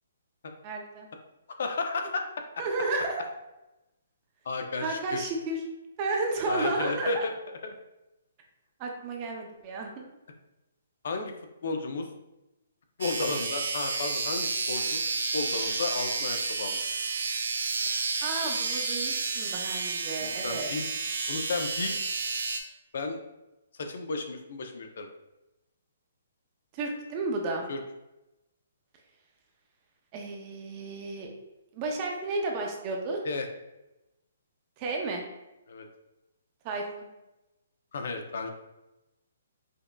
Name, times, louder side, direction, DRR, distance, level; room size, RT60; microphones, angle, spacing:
voice 1, 0.6-1.1 2.6-3.3 4.8-5.6 6.0-7.1 8.8-10.1 18.2-20.7 26.7-27.7 30.1-31.3 31.7-33.2 34.8-35.2 36.6-37.1, right 2 dB, 25° right, 1 dB, 0.5 m, -32 dB
voice 2, 1.6-2.3 4.4-5.3 6.4-7.3 7.6-7.7 11.0-11.3 11.6-12.1 13.0-15.0 15.3-16.8 20.2-20.9 21.3-22.0 22.9-23.2 23.8-25.1 27.7-27.8 33.2-33.5 35.7-35.9 37.9-38.5, left 3 dB, 60° left, 5 dB, 0.5 m, -33 dB
sound 1, 13.0-22.6, right 4 dB, 75° right, 0.5 m, -31 dB
5.1 x 2.5 x 2.2 m, 0.97 s
hypercardioid pair, 165°, 0 cm